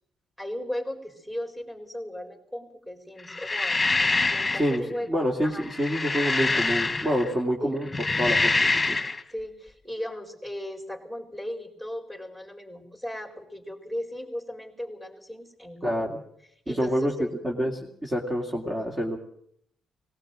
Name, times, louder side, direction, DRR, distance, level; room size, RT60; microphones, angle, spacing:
voice 1, 0.4-3.8 4.3-5.6 7.6-7.8 9.3-16.0 16.7-17.3, left 1 dB, 10° right, 3 dB, 4.6 m, -36 dB
sound 1, 3.3-4.8 5.6-7.3 7.8-9.2, left 3 dB, 20° left, 1.8 m, -25 dB
voice 2, 5.1-7.8 8.2-9.0 15.8-16.2 16.7-17.1 17.4-19.2, equal, 25° right, 0 dB, 2.8 m, -27 dB
18.5 x 18.0 x 7.7 m, 0.68 s
cardioid pair, 90°, 0 cm